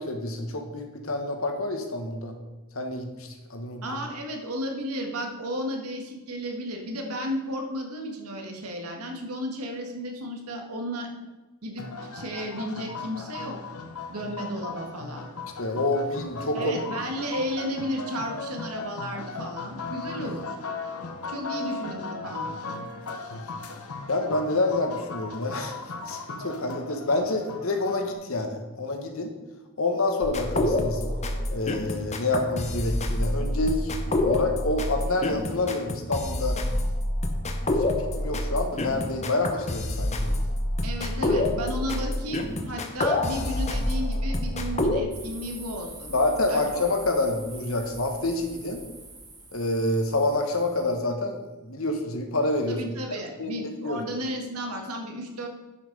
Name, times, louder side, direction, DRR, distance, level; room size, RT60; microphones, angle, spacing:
voice 1, 0.0-2.4 2.7-3.8 15.6-16.7 23.1-23.2 24.1-25.8 26.1-29.3 29.8-31.0 31.5-33.9 34.2-36.6 37.7-40.3 46.1-48.8 49.5-52.8 53.4-54.0, left 2 dB, 65° left, 4 dB, 1.4 m, -27 dB
voice 2, 3.8-11.1 11.6-13.6 14.1-15.3 16.5-20.6 21.3-22.5 40.8-46.1 46.5-46.6 52.7-55.5, equal, 90° right, 3 dB, 1.8 m, -33 dB
sound 1, 11.8-28.1, left 4 dB, 90° left, 0.9 m, -37 dB
sound 2, 30.2-45.0, left 1 dB, 30° left, 0.8 m, -27 dB
sound 3, 45.1-51.0, right 2 dB, 15° right, 2.1 m, -44 dB
10.0 x 5.7 x 5.4 m, 1.2 s
head